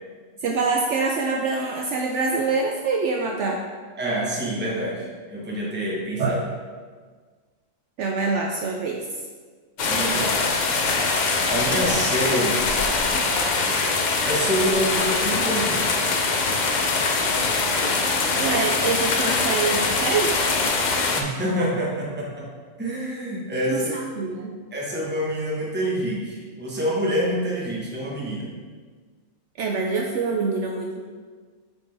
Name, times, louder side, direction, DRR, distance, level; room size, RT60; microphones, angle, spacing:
voice 1, 0.4-3.6 6.2-6.3 8.0-9.1 18.4-20.3 23.7-24.6 29.6-31.0, right 4 dB, 70° right, 0 dB, 0.8 m, -25 dB
voice 2, 4.0-6.4 9.8-10.4 11.5-12.7 14.2-16.0 21.1-22.5 22.8-24.0 24.7-28.5, equal, 10° right, -4 dB, 0.9 m, -26 dB
sound 1, 9.8-21.2, left 3 dB, 55° left, 0.5 m, -23 dB
6.9 x 4.4 x 3.4 m, 1.5 s
omnidirectional pair, 1.4 m